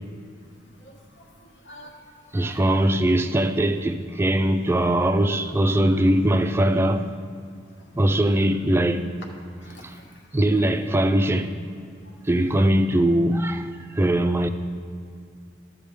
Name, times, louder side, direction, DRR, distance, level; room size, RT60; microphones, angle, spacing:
voice 1, 0.6-2.8 7.8-7.9 9.6-10.6 12.0-12.3, equal, 70° left, 1.2 m, -49 dB
voice 2, 2.3-7.1 7.9-9.1 9.8-10.0 10.3-11.5 12.2-14.5, right 1 dB, 15° right, 0.3 m, -21 dB
12.5 x 7.3 x 3.5 m
head